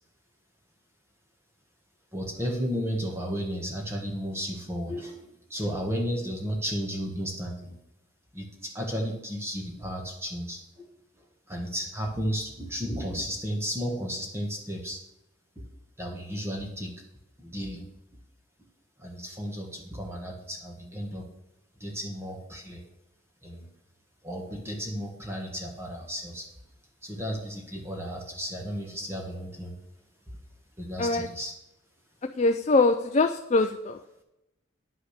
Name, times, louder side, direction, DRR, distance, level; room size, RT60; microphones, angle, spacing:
voice 1, 2.1-7.8 8.3-10.9 11.5-15.0 16.0-16.9 17.4-17.9 19.0-21.3 21.8-22.8 23.4-23.7 24.2-26.5 27.0-29.7 30.3-30.4 30.8-31.5, equal, 10° right, 1 dB, 1.4 m, -33 dB
voice 2, 32.4-34.0, left 3 dB, 30° left, 6 dB, 0.4 m, -23 dB
9.7 x 6.2 x 6.5 m, 0.90 s
head